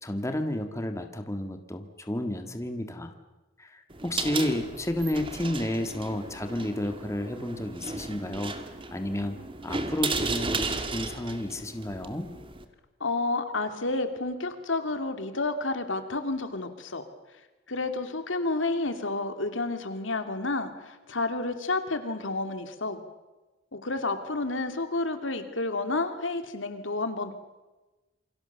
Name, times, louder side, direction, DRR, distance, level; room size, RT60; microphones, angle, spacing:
voice 1, 0.0-3.1 3.6-8.5 8.9-9.4 9.6-12.3, left 1 dB, 15° left, 6 dB, 1.7 m, -31 dB
sound 1, 3.9-12.7, right 3 dB, 25° right, 2.0 m, -35 dB
voice 2, 13.0-17.0 17.7-23.0 23.7-27.3, left 2 dB, 80° left, 8 dB, 2.6 m, -30 dB
28.0 x 24.0 x 6.9 m, 1.1 s
head